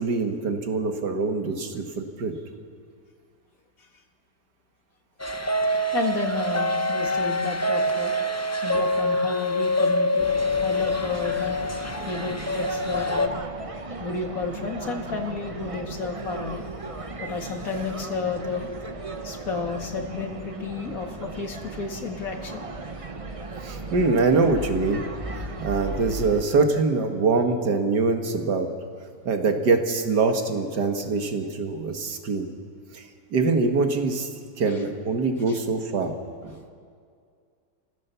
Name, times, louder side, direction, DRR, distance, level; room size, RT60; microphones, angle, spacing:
voice 1, 0.0-2.3 23.6-25.0 25.6-28.7 29.3-32.5 32.9-33.1 33.3-34.3 34.6-36.1 36.4-36.6, right 3 dB, 70° right, 5 dB, 2.1 m, -24 dB
sound 1, 5.2-13.3, left 1 dB, 20° left, 0.4 m, -25 dB
voice 2, 5.9-8.1 8.6-10.3 10.6-11.6 12.1-13.3 14.0-16.6 17.2-18.7 19.2-22.6 34.7-34.8 35.5-35.6, left 4 dB, 50° left, 3 dB, 2.3 m, -31 dB
sound 2, 10.2-26.4, right 3 dB, 30° right, 0.7 m, -36 dB
27.5 x 15.5 x 6.9 m, 2.2 s
omnidirectional pair, 1.9 m